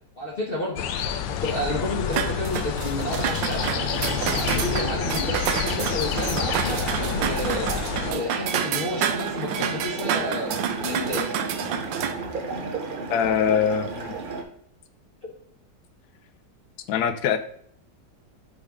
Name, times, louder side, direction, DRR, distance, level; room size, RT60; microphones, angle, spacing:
voice 1, 0.2-0.8 1.3-3.7 4.3-7.7 8.1-11.3, left 1 dB, 40° left, -3 dB, 0.9 m, -30 dB
sound 1, 0.8-8.1, left 8 dB, 85° left, 1.3 m, -29 dB
sound 2, 2.1-12.1, right 9 dB, 90° right, 1.3 m, -29 dB
sound 3, 3.6-14.4, right 3 dB, 60° right, 0.5 m, -33 dB
voice 2, 13.1-14.2 16.9-17.4, left 8 dB, 70° left, 9 dB, 1.1 m, -23 dB
5.4 x 5.0 x 3.6 m, 0.66 s
omnidirectional pair, 2.0 m